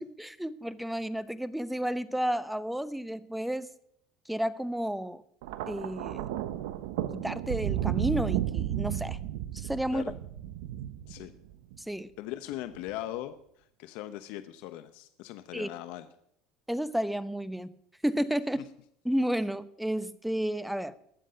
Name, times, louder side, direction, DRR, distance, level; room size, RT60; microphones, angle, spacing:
voice 1, 0.0-3.7 4.3-5.2 5.7-6.3 7.1-9.2 9.5-10.1 11.8-12.1 15.5-15.7 16.7-17.7 18.0-18.6 19.0-20.9, equal, 5° right, 15 dB, 0.9 m, -31 dB
Thunder, 5.4-11.8 12.7-13.0, right 12 dB, 80° right, 0.9 m, -33 dB
voice 2, 12.2-13.3 13.8-16.1 18.5-18.6, left 14 dB, 70° left, 10 dB, 0.9 m, -39 dB
20.5 x 7.6 x 5.2 m, 0.70 s
hypercardioid pair, 85°, 2 cm